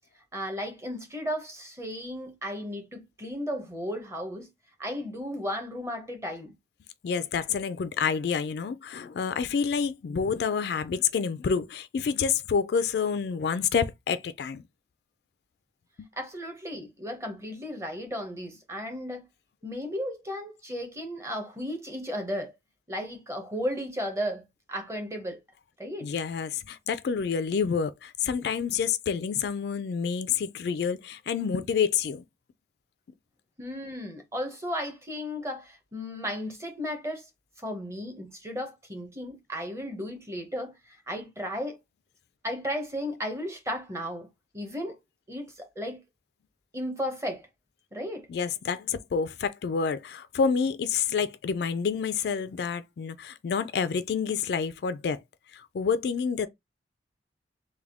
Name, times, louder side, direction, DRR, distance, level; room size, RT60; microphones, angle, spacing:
voice 1, 0.3-4.5 4.8-6.5 16.2-19.3 19.6-22.5 22.9-24.4 24.7-25.4 25.8-26.1 33.6-37.3 37.6-41.8 42.4-44.3 44.5-45.0 45.3-46.0 46.7-47.5 47.9-48.3, equal, 15° right, 0.8 m, -34 dB
voice 2, 7.0-14.6 26.0-32.2 48.3-55.2 55.5-56.5, left 6 dB, 60° left, 0.3 m, -28 dB
3.4 x 2.2 x 3.5 m
head